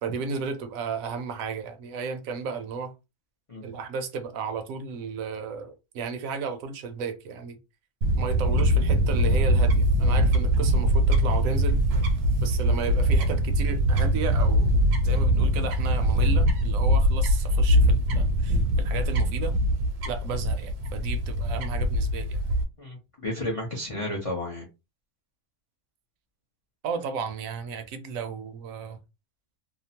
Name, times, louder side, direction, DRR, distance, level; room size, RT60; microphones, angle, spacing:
voice 1, 0.0-2.9 3.6-7.6 8.2-11.8 12.4-14.7 15.0-19.6 20.0-22.4 26.8-29.0, right 5 dB, 70° right, 0.9 m, -34 dB
Fowl / Bird, 8.0-22.6, equal, 85° right, 1.2 m, -22 dB
voice 2, 22.8-24.6, left 1 dB, 50° left, 0.4 m, -32 dB
2.8 x 2.0 x 2.7 m
omnidirectional pair, 1.7 m